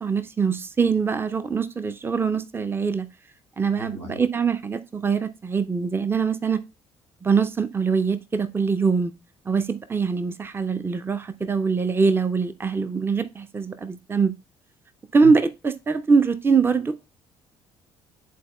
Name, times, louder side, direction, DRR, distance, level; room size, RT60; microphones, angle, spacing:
voice 1, 0.0-3.1 3.6-6.6 7.2-9.1 9.5-14.3 15.1-17.0, right 5 dB, 15° right, 0.5 m, -23 dB
voice 2, 3.7-4.2 15.2-15.3, left 3 dB, 90° right, 0.8 m, -36 dB
11.0 x 4.0 x 2.3 m
figure-of-eight pair, 45°, 14 cm